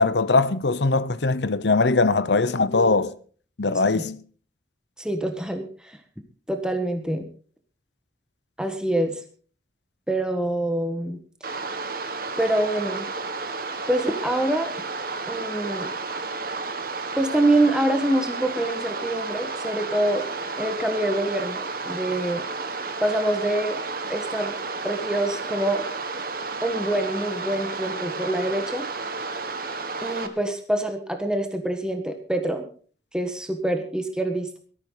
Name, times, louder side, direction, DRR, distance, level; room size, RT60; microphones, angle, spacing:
voice 1, 0.0-3.1 3.6-4.2, left 3 dB, 80° left, 0.9 m, -21 dB
voice 2, 5.0-6.0 6.5-7.3 8.6-9.2 10.1-11.2 12.4-13.1 13.9-14.7 15.3-15.9 17.1-20.3 20.6-22.4 23.0-23.8 24.1-24.6 24.8-25.8 26.6-28.9 30.0-32.6 33.1-34.6, right 1 dB, 5° right, 1.5 m, -25 dB
sound 1, 11.4-30.3, right 3 dB, 55° right, 1.7 m, -32 dB
17.5 x 14.0 x 4.0 m
head